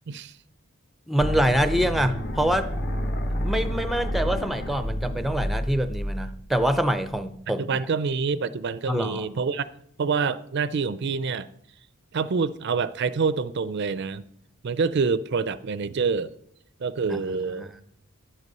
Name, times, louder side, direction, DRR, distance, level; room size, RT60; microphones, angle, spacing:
voice 1, 1.1-2.7 3.4-7.6 8.9-9.3 17.1-17.2 17.5-17.8, equal, ahead, 0.5 m, -25 dB
sound 1, 1.2-7.2, equal, 50° left, 1.7 m, -30 dB
voice 2, 7.6-9.7 10.0-11.5 12.1-14.2 14.6-16.3 16.8-17.7, right 5 dB, 55° right, 0.4 m, -26 dB
11.0 x 8.2 x 5.4 m
head